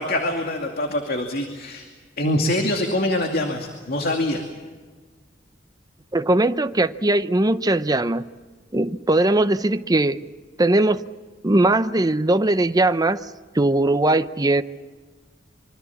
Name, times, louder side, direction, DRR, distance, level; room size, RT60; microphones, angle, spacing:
voice 1, 0.0-1.9 2.2-4.4, left 1 dB, 55° left, 3 dB, 2.5 m, -24 dB
voice 2, 6.1-8.2 8.7-10.2 10.6-11.1 11.4-13.2 13.5-14.6, right 2 dB, 20° right, 11 dB, 0.7 m, -19 dB
25.5 x 24.5 x 7.2 m, 1.4 s
head